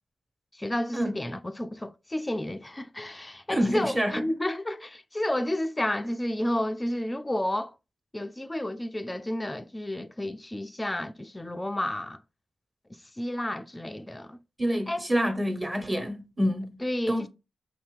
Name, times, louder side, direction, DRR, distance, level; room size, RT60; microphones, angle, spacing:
voice 1, 0.5-7.7 8.1-12.2 13.2-14.4 14.9-15.0 16.8-17.3, left 1 dB, 20° left, 0.4 m, -31 dB
voice 2, 3.5-4.2 14.6-16.8 17.1-17.3, equal, 25° right, 1.5 m, -27 dB
5.2 x 2.8 x 3.3 m
supercardioid pair, 40°, 0 cm